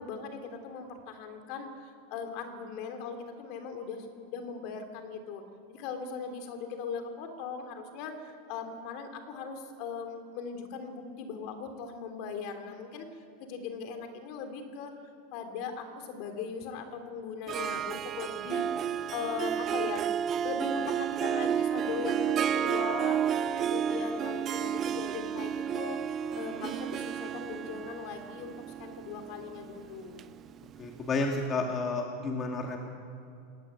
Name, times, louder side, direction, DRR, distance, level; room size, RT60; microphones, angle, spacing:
voice 1, 0.0-5.4 5.7-13.1 13.4-14.9 15.3-18.7 19.1-20.0 20.4-23.2 23.6-26.0 26.3-30.2, left 5 dB, 50° left, 6 dB, 3.1 m, -39 dB
Harp, 17.5-31.0, right 8 dB, 25° right, 0.6 m, -31 dB
voice 2, 30.8-32.8, left 3 dB, 20° left, 2 dB, 2.0 m, -31 dB
20.0 x 18.5 x 9.4 m, 2.6 s
supercardioid pair, 155°, 0 cm